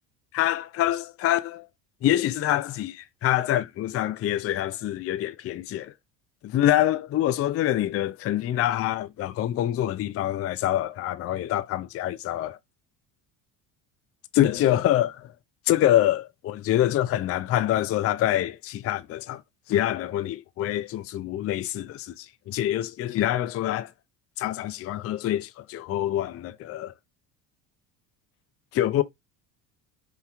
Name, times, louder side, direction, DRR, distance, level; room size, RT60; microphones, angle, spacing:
voice 1, 0.3-1.7 2.0-5.9 6.4-12.6 14.3-15.3 15.7-19.4 19.7-23.9 24.4-26.9 28.7-29.0, left 13 dB, 30° left, 0.4 m, -25 dB
5.3 x 3.1 x 2.4 m
hypercardioid pair, 70°, 50 cm